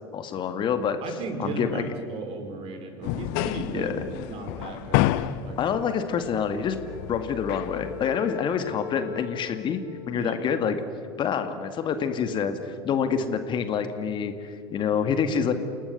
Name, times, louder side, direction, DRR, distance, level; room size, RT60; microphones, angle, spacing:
voice 1, 0.1-1.0 1.4-1.9 3.7-4.0 5.6-6.8 7.1-9.8 10.1-10.8 11.2-15.5, left 7 dB, 40° left, 9 dB, 2.0 m, -27 dB
voice 2, 1.0-5.6 10.1-10.4, right 2 dB, 45° right, 5 dB, 4.9 m, -35 dB
sound 1, 3.0-8.1, left 14 dB, 55° left, 0.9 m, -30 dB
Wind instrument woodwind instrument, 6.8-11.3, left 11 dB, 70° left, 3.0 m, -42 dB
30.0 x 19.0 x 8.3 m, 2.4 s
figure-of-eight pair, 70°, 13 cm